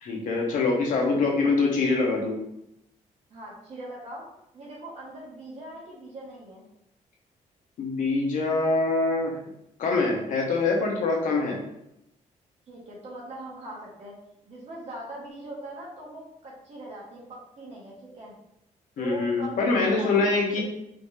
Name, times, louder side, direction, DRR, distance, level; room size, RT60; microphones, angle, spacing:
voice 1, 0.0-2.4 7.8-9.3 9.8-11.6 19.0-20.6, left 3 dB, 80° left, 0 dB, 1.1 m, -24 dB
voice 2, 3.3-4.3 4.5-6.6 12.7-14.2 14.4-18.3 19.0-20.6, right 1 dB, 55° right, -5 dB, 1.5 m, -41 dB
5.1 x 3.3 x 2.7 m, 0.80 s
cardioid pair, 125°, 13 cm